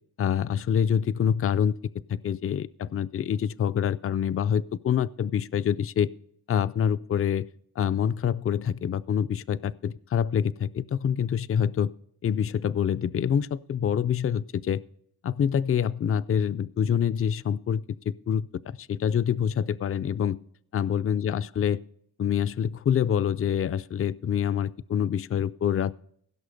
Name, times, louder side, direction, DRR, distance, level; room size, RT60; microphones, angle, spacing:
voice 1, 0.2-1.7 2.1-6.1 6.5-7.5 7.8-11.9 12.2-14.8 15.2-20.4 20.7-21.8 22.2-25.9, left 8 dB, 40° left, 17 dB, 0.4 m, -26 dB
16.5 x 6.3 x 5.2 m, 0.67 s
cardioid pair, 65°, 38 cm